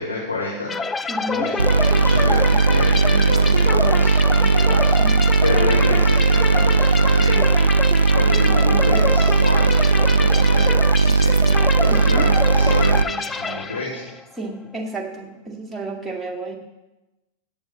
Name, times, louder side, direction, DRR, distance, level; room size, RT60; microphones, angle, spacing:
voice 1, 0.0-1.0 1.3-4.9 5.4-7.5 8.1-14.1, left 2 dB, 80° left, -6 dB, 2.8 m, -29 dB
sound 1, 0.7-14.2, left 4 dB, 15° left, 0.4 m, -27 dB
voice 2, 1.1-1.5 4.7-5.2 11.9-12.3 14.4-16.6, right 2 dB, 5° right, -1 dB, 2.1 m, -31 dB
sound 2, 1.6-13.0, right 4 dB, 75° right, 0.3 m, -17 dB
16.5 x 9.9 x 3.3 m, 1.0 s
figure-of-eight pair, 90°, 0 cm